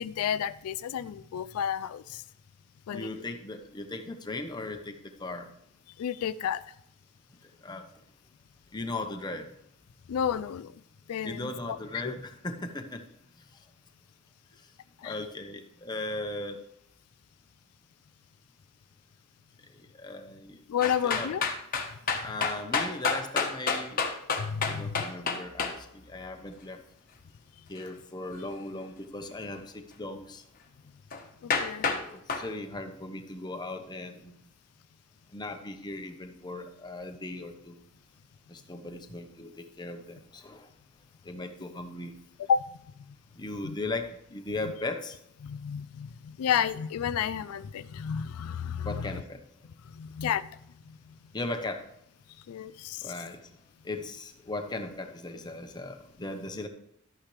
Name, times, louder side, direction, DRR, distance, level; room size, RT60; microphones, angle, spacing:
voice 1, 0.0-2.2 2.9-3.1 6.0-6.6 10.1-10.7 11.1-11.5 12.0-12.2 15.0-15.2 20.7-21.4 24.4-25.0 31.4-31.9 42.5-42.6 43.6-43.7 45.4-49.1 49.9-50.5 52.5-53.1, left 8 dB, 80° left, 15 dB, 0.3 m, -31 dB
voice 2, 2.9-5.5 7.6-7.9 8.7-9.5 11.2-13.0 15.0-16.6 20.0-20.6 21.0-21.3 22.2-24.0 24.7-26.8 27.7-30.4 31.8-34.4 35.3-37.8 38.5-40.7 41.2-42.1 43.4-45.2 48.8-49.4 51.3-51.8 53.0-53.4 53.8-56.7, left 2 dB, 20° left, 5 dB, 0.9 m, -37 dB
sound 1, 20.8-25.7 31.1-31.2 31.5-32.0 32.3-32.5, left 5 dB, 40° left, 1.2 m, -28 dB
12.0 x 8.8 x 3.3 m, 0.74 s
head